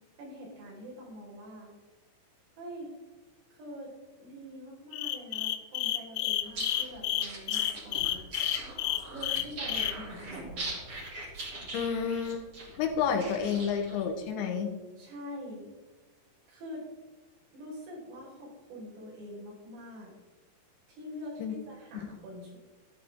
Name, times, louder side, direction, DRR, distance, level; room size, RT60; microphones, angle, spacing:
voice 1, 0.2-1.7 2.6-2.9 3.5-3.9 4.2-8.5 9.1-10.7 15.0-15.7 16.5-16.8 17.5-20.1 20.9-22.6, equal, 85° right, -4 dB, 7.6 m, -44 dB
sound 1, 4.9-9.9, left 13 dB, 90° left, 3.5 m, -30 dB
sound 2, 6.4-14.0, right 2 dB, 30° right, 3.7 m, -41 dB
voice 2, 11.7-12.4 12.8-14.7 21.4-21.6, left 7 dB, 70° left, 3 dB, 3.3 m, -30 dB
14.0 x 13.0 x 3.7 m, 1.2 s
omnidirectional pair, 5.9 m